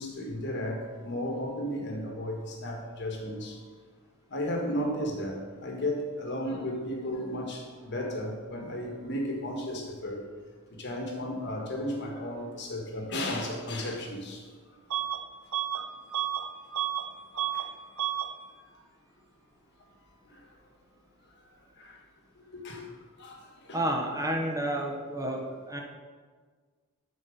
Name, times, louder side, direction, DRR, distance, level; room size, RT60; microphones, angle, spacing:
voice 1, 0.0-3.6 4.3-10.3 10.8-14.4 17.3-17.7 21.8-22.0 22.5-22.8 23.2-23.8, left 1 dB, 55° left, 1 dB, 1.4 m, -34 dB
Bus / Alarm, 14.9-15.2 15.5-17.1 17.3-17.7 18.0-18.3, right 11 dB, 80° right, 0.5 m, -31 dB
voice 2, 23.7-25.8, right 1 dB, 15° right, 1 dB, 0.8 m, -30 dB
12.0 x 4.3 x 5.1 m, 1.5 s
head